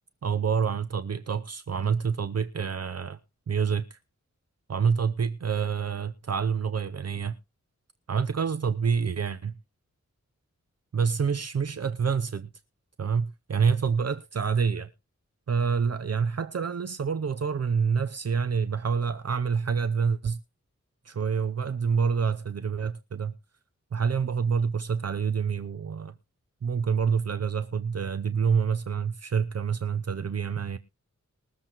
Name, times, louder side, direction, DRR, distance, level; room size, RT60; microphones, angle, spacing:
voice 1, 0.2-3.2 3.5-4.0 4.7-7.3 8.1-9.5 10.9-12.5 13.0-14.9 15.5-20.4 21.0-23.3 23.9-26.1 26.6-30.8, right 6 dB, 55° right, 0.6 m, -27 dB
21.5 x 7.3 x 3.0 m
wide cardioid pair, 70°, 30 cm